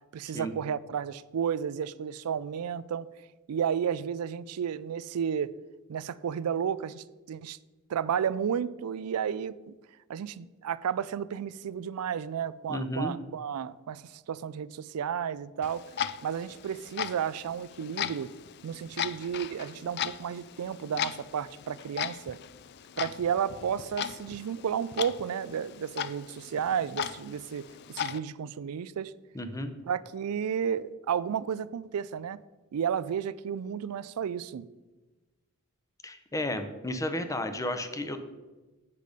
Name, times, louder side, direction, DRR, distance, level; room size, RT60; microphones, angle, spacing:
voice 1, 0.1-3.1 3.5-5.5 5.9-7.6 7.9-9.7 10.1-15.8 16.2-18.3 18.6-22.4 23.0-27.6 27.9-29.1 29.8-32.4 32.7-34.7, right 8 dB, 75° right, 18 dB, 0.4 m, -32 dB
voice 2, 12.7-13.1 29.3-29.7 36.0-38.2, left 1 dB, 15° left, 8 dB, 0.7 m, -33 dB
Clock, 15.6-28.2, left 9 dB, 50° left, 0.3 m, -38 dB
8.3 x 6.7 x 5.1 m, 1.2 s
head